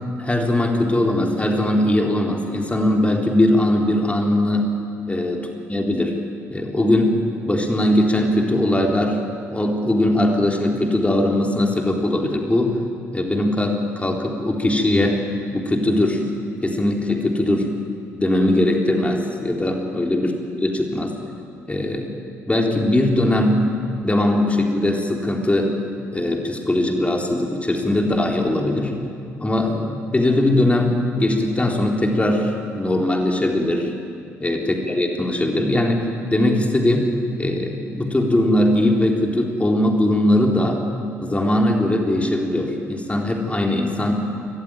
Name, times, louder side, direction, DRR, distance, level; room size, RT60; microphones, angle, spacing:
voice 1, 0.2-4.7 5.1-5.4 5.7-6.2 6.5-7.1 7.5-9.2 9.5-12.7 13.1-15.2 15.5-16.2 16.6-17.7 18.2-21.1 21.7-22.2 22.5-23.6 24.0-25.8 26.1-28.9 29.4-33.9 34.4-37.1 37.4-40.8 41.2-44.1, left 1 dB, 15° left, 1 dB, 3.8 m, -20 dB
25.5 x 15.0 x 9.1 m, 2.4 s
figure-of-eight pair, 45°, 8 cm